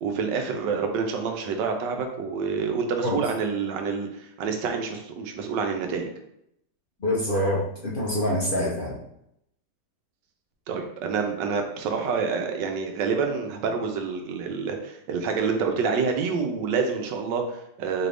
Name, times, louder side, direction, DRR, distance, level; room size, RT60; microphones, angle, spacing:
voice 1, 0.0-6.1 10.7-18.1, right 5 dB, 85° right, 4 dB, 1.3 m, -27 dB
voice 2, 7.0-9.0, left 1 dB, 75° left, -5 dB, 0.5 m, -25 dB
4.6 x 2.5 x 3.3 m, 0.78 s
omnidirectional pair, 1.9 m